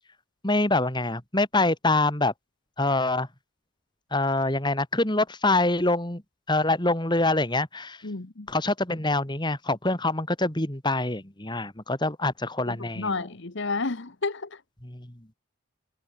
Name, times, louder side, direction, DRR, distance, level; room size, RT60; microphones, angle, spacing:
voice 1, 0.4-2.3 2.8-3.3 4.1-6.2 6.5-8.0 8.5-13.3 14.8-15.1, left 2 dB, 20° left, 2.4 m, -25 dB
voice 2, 8.0-8.5 12.6-14.6, left 3 dB, 55° left, 1.2 m, -31 dB
head